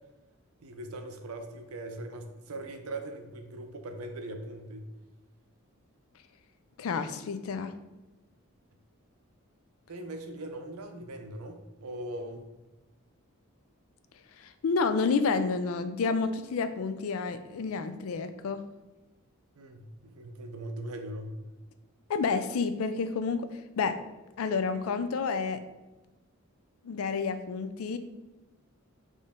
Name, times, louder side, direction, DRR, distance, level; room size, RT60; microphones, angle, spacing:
voice 1, 0.6-4.9 9.9-12.4 19.6-21.4, right 1 dB, 85° right, 6 dB, 0.6 m, -40 dB
voice 2, 6.8-7.7 14.4-18.6 22.1-23.5 23.8-24.0 24.4-25.6 26.8-28.0, left 4 dB, 75° left, 10 dB, 0.4 m, -29 dB
4.3 x 3.1 x 3.5 m, 1.1 s
head